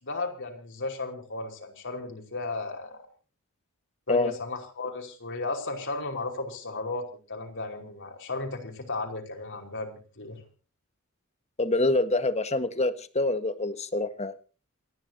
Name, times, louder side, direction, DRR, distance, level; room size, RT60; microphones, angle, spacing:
voice 1, 0.0-3.0 4.1-10.4, left 3 dB, 60° left, 3 dB, 5.1 m, -35 dB
voice 2, 11.6-14.3, left 2 dB, 30° left, 10 dB, 1.6 m, -26 dB
28.5 x 11.0 x 2.9 m, 0.37 s
head